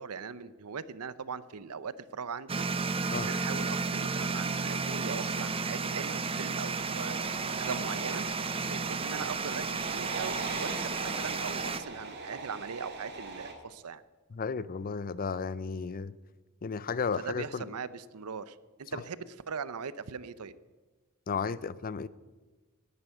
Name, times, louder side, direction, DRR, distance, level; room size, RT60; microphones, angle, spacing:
voice 1, 0.0-2.7 3.2-7.2 7.6-8.3 8.7-9.7 9.9-14.0 17.1-20.6, right 5 dB, 80° right, 16 dB, 0.7 m, -40 dB
sound 1, 2.5-11.8, right 4 dB, 25° right, 0.6 m, -33 dB
sound 2, 6.7-13.5, right 3 dB, 50° right, 2.2 m, -41 dB
voice 2, 14.3-16.1 16.6-17.7 18.9-19.0 21.3-22.1, left 5 dB, 40° left, 18 dB, 0.5 m, -34 dB
11.0 x 10.5 x 9.0 m, 1.3 s
head